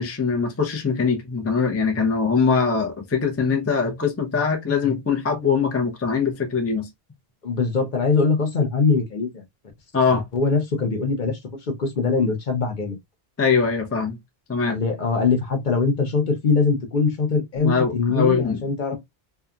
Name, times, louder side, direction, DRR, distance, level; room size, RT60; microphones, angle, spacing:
voice 1, 0.0-6.9 9.9-10.2 13.4-14.2 14.5-14.8 17.6-18.6, left 5 dB, 20° left, 0.5 m, -22 dB
voice 2, 7.4-9.4 10.1-13.0 14.7-19.0, left 4 dB, 55° left, 0.8 m, -22 dB
2.8 x 2.3 x 2.3 m
omnidirectional pair, 1.0 m